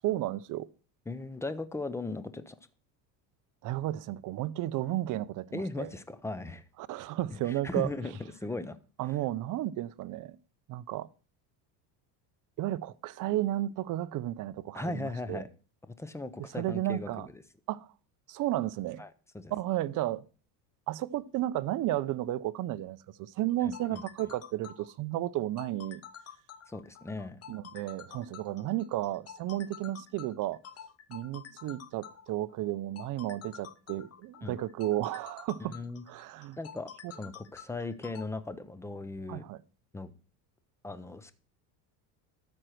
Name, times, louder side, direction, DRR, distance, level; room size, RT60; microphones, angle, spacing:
voice 1, 0.0-0.7 3.6-5.9 6.9-7.9 9.0-10.4 10.7-11.1 12.6-15.4 16.4-17.3 17.7-17.9 18.3-19.0 19.5-20.2 20.9-26.0 27.5-30.6 31.1-35.8 36.1-36.6 37.0-37.1 39.3-39.6, right 14 dB, 40° right, 0.6 m, -33 dB
voice 2, 1.1-2.6 5.5-6.6 7.3-8.8 14.7-15.5 15.9-17.4 19.0-19.5 23.6-24.0 26.7-27.4 34.4-34.6 35.7-36.0 36.6-39.4 39.9-40.1 40.8-41.3, left 2 dB, 5° left, 0.4 m, -38 dB
sound 1, 23.5-38.2, left 8 dB, 30° left, 0.8 m, -49 dB
13.0 x 4.5 x 6.3 m
cardioid pair, 130°, 47 cm